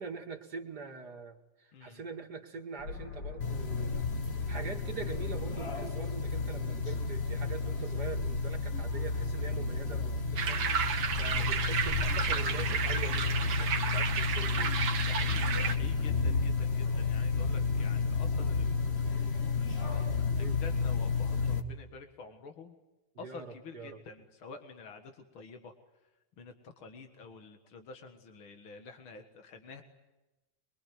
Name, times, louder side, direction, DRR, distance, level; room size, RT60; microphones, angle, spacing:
voice 1, 0.0-4.0 4.5-14.8 20.4-20.6 23.1-24.0, right 5 dB, 55° right, 3 dB, 2.6 m, -44 dB
sound 1, 2.8-6.5 6.8-6.9, left 5 dB, 65° left, 3.2 m, -47 dB
sound 2, 3.4-21.6, left 4 dB, 35° left, 1.7 m, -31 dB
sound 3, 10.4-15.8, right 6 dB, 75° right, 2.3 m, -32 dB
voice 2, 15.1-19.3 20.3-22.7 23.2-25.7 26.4-29.8, left 4 dB, 85° left, 6 dB, 2.6 m, -49 dB
24.5 x 23.5 x 9.4 m, 1.0 s
omnidirectional pair, 2.2 m